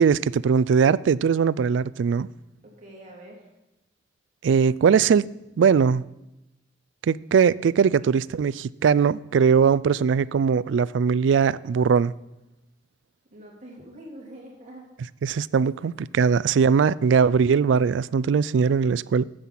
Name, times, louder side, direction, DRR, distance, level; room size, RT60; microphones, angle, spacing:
voice 1, 0.0-2.3 4.4-5.3 5.6-6.0 7.1-12.1 15.2-19.2, right 6 dB, 75° right, 0.3 m, -20 dB
voice 2, 2.6-3.5 13.3-14.9, right 1 dB, 40° right, 2.9 m, -45 dB
12.5 x 7.6 x 5.7 m
head